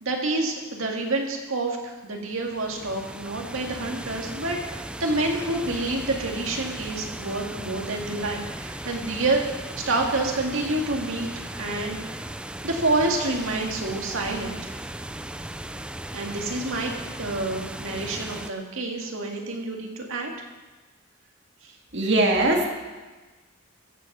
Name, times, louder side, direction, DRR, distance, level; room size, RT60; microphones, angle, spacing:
voice 1, 0.0-9.4 9.9-12.2 12.6-14.7 16.1-16.9 17.2-20.3 21.6-21.7, right 2 dB, 80° right, 1 dB, 2.1 m, -28 dB
sound 1, 2.2-18.5, right 1 dB, 5° right, 0.3 m, -37 dB
voice 2, 21.9-22.7, right 2 dB, 60° right, 1 dB, 2.1 m, -20 dB
15.5 x 7.7 x 6.1 m, 1.3 s
head